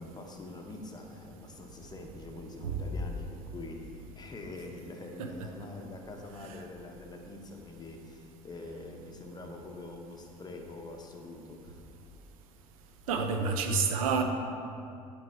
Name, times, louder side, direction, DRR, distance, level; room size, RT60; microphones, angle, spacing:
voice 1, 0.0-11.8, left 2 dB, 20° left, 2 dB, 0.9 m, -45 dB
voice 2, 13.1-14.2, right 5 dB, 70° right, 5 dB, 0.6 m, -29 dB
8.9 x 3.1 x 4.3 m, 2.5 s
figure-of-eight pair, 60°, 18 cm